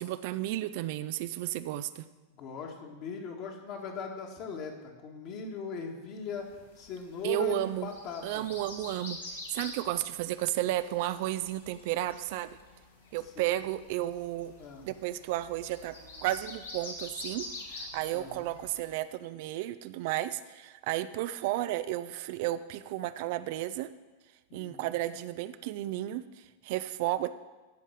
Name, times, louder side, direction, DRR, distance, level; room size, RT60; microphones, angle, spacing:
voice 1, 0.0-2.1 7.2-7.9 8.2-9.2 9.5-12.5 13.1-14.5 14.8-15.9 16.2-23.9 24.5-27.3, right 14 dB, 50° right, 13 dB, 0.4 m, -33 dB
voice 2, 2.3-8.5 14.6-14.8 18.1-18.5 24.5-24.9, left 5 dB, 40° left, 2 dB, 2.1 m, -39 dB
sound 1, 6.5-19.0, left 2 dB, 70° left, 2.4 m, -46 dB
14.5 x 5.5 x 7.6 m, 1.3 s
figure-of-eight pair, 90°, 0 cm